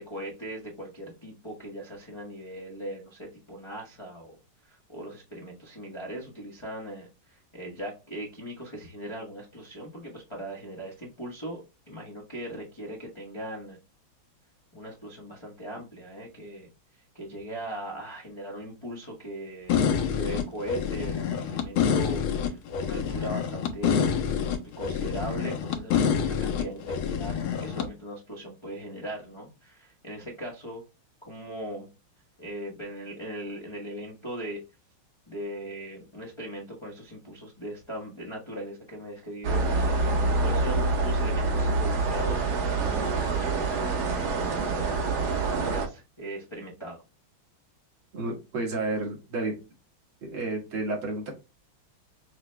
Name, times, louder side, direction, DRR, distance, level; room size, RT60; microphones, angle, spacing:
voice 1, 0.0-4.4 4.6-13.8 14.7-16.7 17.1-19.8 20.1-24.2 24.8-30.8 31.2-31.9 32.4-34.6 35.3-40.1 40.4-47.0, right 1 dB, 45° left, -3 dB, 0.3 m, -39 dB
sound 1, 19.7-27.9, left 7 dB, 80° left, 1.5 m, -27 dB
sound 2, 39.4-45.9, right 3 dB, 60° right, 1.2 m, -26 dB
voice 2, 48.1-49.5 50.2-51.3, right 2 dB, 80° right, -1 dB, 2.4 m, -31 dB
5.9 x 2.0 x 3.1 m, 0.29 s
omnidirectional pair, 2.2 m